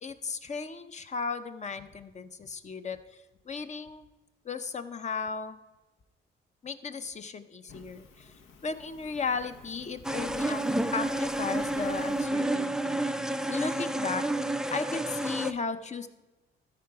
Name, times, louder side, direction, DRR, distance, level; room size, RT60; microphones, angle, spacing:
voice 1, 0.0-4.0 4.4-5.6 6.6-8.3 8.6-10.7 10.9-13.0 13.5-14.2 14.7-16.1, left 4 dB, 35° left, 11 dB, 0.7 m, -35 dB
Fire, 7.7-12.3, left 4 dB, 80° left, 1.1 m, -52 dB
sound 1, 10.0-15.5, right 1 dB, 5° right, 0.4 m, -30 dB
13.5 x 4.8 x 4.7 m, 1.1 s
cardioid pair, 90°, 20 cm